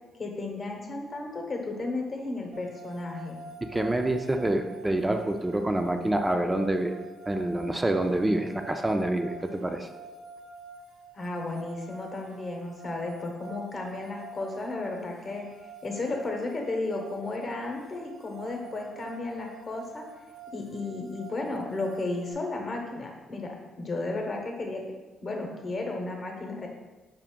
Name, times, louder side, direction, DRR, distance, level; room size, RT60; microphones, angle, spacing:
voice 1, 0.2-3.4 11.1-15.5 15.8-20.1 20.5-24.8 25.2-26.7, left 2 dB, 40° left, 1 dB, 0.8 m, -34 dB
sound 1, 2.5-22.3, right 3 dB, 60° right, 0.6 m, -47 dB
voice 2, 3.7-6.9 7.3-9.9, right 1 dB, 15° right, 5 dB, 0.3 m, -27 dB
5.0 x 2.5 x 3.6 m, 1.2 s
cardioid pair, 90°, 0 cm